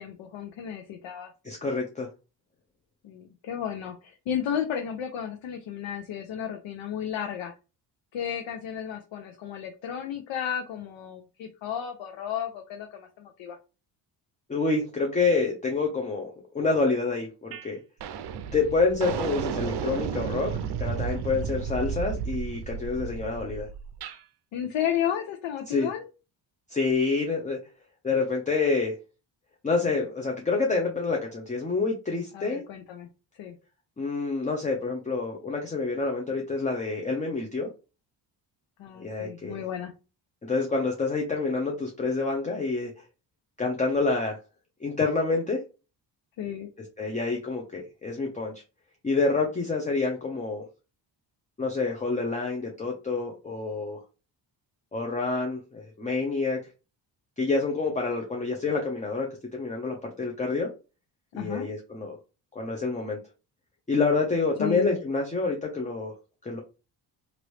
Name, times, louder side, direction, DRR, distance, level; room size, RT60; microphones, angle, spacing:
voice 1, 0.0-1.3 3.0-7.5 8.1-13.6 24.5-26.1 32.3-33.1 33.4-33.6 38.8-39.9 46.4-46.7 61.4-61.7 64.6-65.0, left 9 dB, 80° left, 4 dB, 0.7 m, -33 dB
voice 2, 1.4-2.1 14.5-17.8 18.5-23.7 25.7-25.9 26.7-27.6 28.0-29.0 29.6-32.7 34.0-37.7 39.0-39.6 40.4-42.9 43.6-44.4 44.8-45.6 47.0-48.5 49.0-50.6 51.6-54.0 54.9-56.6 57.4-60.7 61.3-62.2 62.5-63.2 63.9-66.1 66.4-66.6, left 3 dB, 15° left, 1 dB, 0.6 m, -27 dB
sound 1, 17.5-17.7 18.0-24.2, right 6 dB, 60° right, 0.5 m, -33 dB
3.0 x 2.6 x 3.1 m, 0.31 s
cardioid pair, 115°, 45 cm